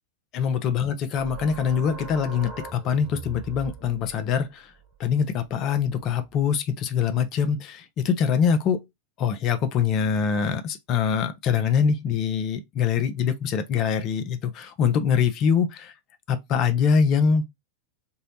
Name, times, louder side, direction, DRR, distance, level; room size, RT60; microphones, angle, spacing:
voice 1, 0.3-4.7 5.0-8.8 9.2-15.9 16.3-17.5, left 7 dB, 35° left, 0.4 m, -24 dB
sound 1, 1.2-6.4, right 5 dB, 20° right, 0.7 m, -42 dB
2.7 x 2.0 x 2.8 m
figure-of-eight pair, 90°, 0 cm